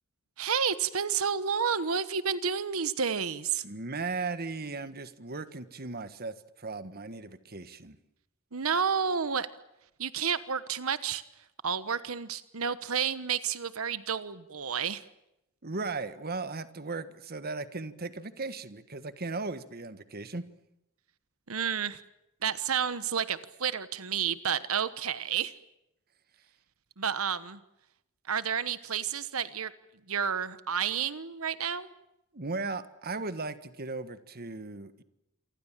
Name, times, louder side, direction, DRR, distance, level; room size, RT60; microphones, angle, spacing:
voice 1, 0.4-3.6 8.5-9.5 10.0-11.2 11.6-15.0 21.5-22.0 22.4-25.5 27.0-27.6 28.3-29.7 30.1-31.9, right 7 dB, 85° right, 14 dB, 1.2 m, -30 dB
voice 2, 3.6-8.0 15.6-20.4 32.3-35.0, right 3 dB, 45° right, 12 dB, 1.5 m, -37 dB
28.0 x 24.5 x 7.4 m, 0.86 s
head